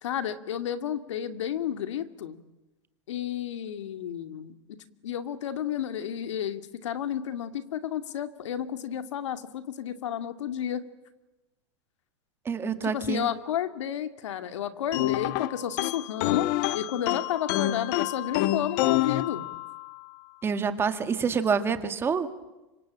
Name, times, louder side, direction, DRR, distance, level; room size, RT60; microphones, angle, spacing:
voice 1, 0.0-2.4 3.1-4.5 5.0-10.8 12.8-16.5 16.7-19.5, left 10 dB, 85° left, 10 dB, 2.3 m, -31 dB
voice 2, 12.5-13.3 20.4-22.3, right 6 dB, 15° right, 10 dB, 1.9 m, -27 dB
sound 1, 14.9-20.0, left 15 dB, 45° left, 1.1 m, -28 dB
26.0 x 24.0 x 8.8 m, 1.1 s
supercardioid pair, 155°, 15 cm